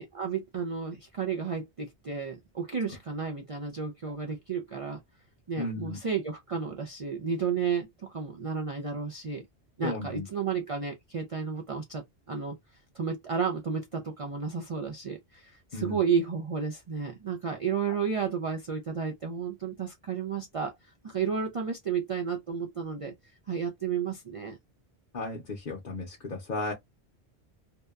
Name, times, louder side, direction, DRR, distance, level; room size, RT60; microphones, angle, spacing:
voice 1, 0.0-5.0 5.5-9.5 9.8-12.6 12.9-20.8 21.0-23.1 23.5-24.6, right 6 dB, 60° right, 0.3 m, -32 dB
voice 2, 5.5-6.0 9.8-10.3 15.7-16.0 17.9-18.0 25.1-26.7, left 2 dB, 50° left, 0.7 m, -34 dB
2.8 x 2.1 x 2.3 m
omnidirectional pair, 1.1 m